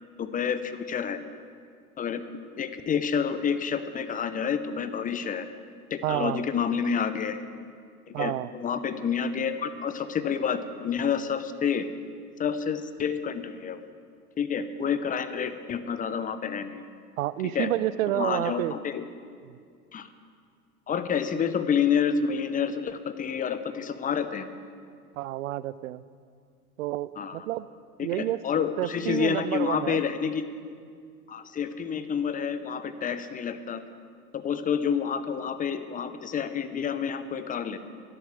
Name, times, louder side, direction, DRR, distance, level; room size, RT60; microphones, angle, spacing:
voice 1, 0.2-1.2 2.0-2.2 2.6-5.5 5.9-7.4 8.1-11.9 12.4-13.8 14.4-16.8 17.4-17.7 18.1-19.0 19.9-20.1 20.9-24.5 27.2-27.5 28.0-30.4 31.3-33.8 34.3-37.8, left 7 dB, 15° left, 11 dB, 0.8 m, -29 dB
voice 2, 6.0-6.4 8.1-8.5 17.2-18.7 19.5-19.6 25.2-26.0 26.8-27.7 28.0-28.4 28.8-30.0, right 14 dB, 60° right, 17 dB, 0.6 m, -29 dB
11.5 x 11.0 x 7.6 m, 2.2 s
figure-of-eight pair, 85°, 47 cm